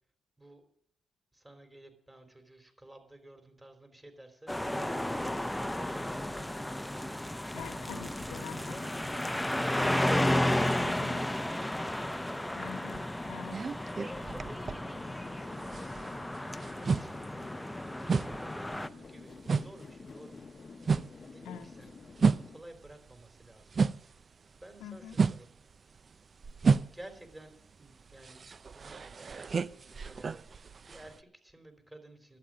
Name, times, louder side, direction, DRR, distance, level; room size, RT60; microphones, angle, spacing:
voice 1, 1.3-7.2 14.0-15.0 15.3-16.2 16.5-17.4 17.8-20.4 20.8-22.0 22.5-23.7 24.2-25.5 26.8-28.4 28.7-32.4, right 1 dB, 20° right, 6 dB, 3.6 m, -54 dB
sound 1, 4.5-18.9, left 1 dB, 10° left, 0.8 m, -33 dB
voice 2, 7.5-9.2 10.8-11.2 12.5-13.6 21.5-21.7 24.8-25.2, left 8 dB, 85° left, 6 dB, 1.1 m, -44 dB
sound 2, 9.5-22.6, left 4 dB, 45° left, 0.9 m, -51 dB
sound 3, 12.9-15.3 15.6-24.2 24.6-31.2, right 5 dB, 50° right, 0.5 m, -32 dB
11.5 x 8.6 x 8.7 m, 0.67 s
supercardioid pair, 55°, 0 cm